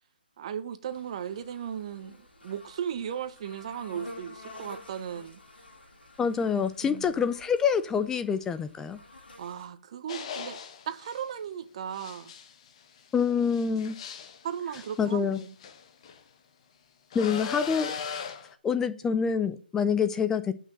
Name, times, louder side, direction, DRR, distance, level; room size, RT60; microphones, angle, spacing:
voice 1, 0.4-2.2 2.4-5.4 6.8-7.2 9.4-10.6 10.9-12.3 14.4-15.5, right 8 dB, 35° right, 1.0 m, -36 dB
sound 1, 0.9-9.7, left 2 dB, 75° left, 3.3 m, -50 dB
voice 2, 6.2-9.0 13.1-14.0 15.0-15.4 17.1-17.9 18.6-20.5, left 6 dB, 10° left, 0.5 m, -26 dB
sound 2, 10.1-11.2 11.9-16.2 17.1-18.5, left 7 dB, 35° left, 1.1 m, -39 dB
8.0 x 5.9 x 7.2 m
figure-of-eight pair, 150°, 5 cm